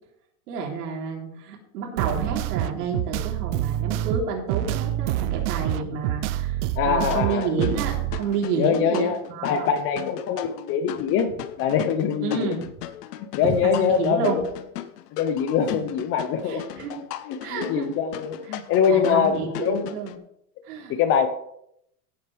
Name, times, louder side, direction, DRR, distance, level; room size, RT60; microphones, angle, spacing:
voice 1, 0.5-9.7 12.2-12.6 13.4-14.5 16.5-16.9 17.4-17.9 18.5-18.6 18.9-20.1 20.6-21.0, right 5 dB, 85° right, -1 dB, 3.7 m, -30 dB
sound 1, 2.0-8.2, right 13 dB, 50° right, 0.6 m, -27 dB
voice 2, 6.8-7.5 8.6-12.6 13.3-14.4 15.1-16.6 17.3-19.9 20.9-21.3, left 7 dB, 30° left, 11 dB, 0.6 m, -23 dB
sound 2, 7.1-20.2, left 11 dB, 85° left, 0.9 m, -37 dB
16.5 x 7.9 x 3.4 m, 0.76 s
supercardioid pair, 165°, 45 cm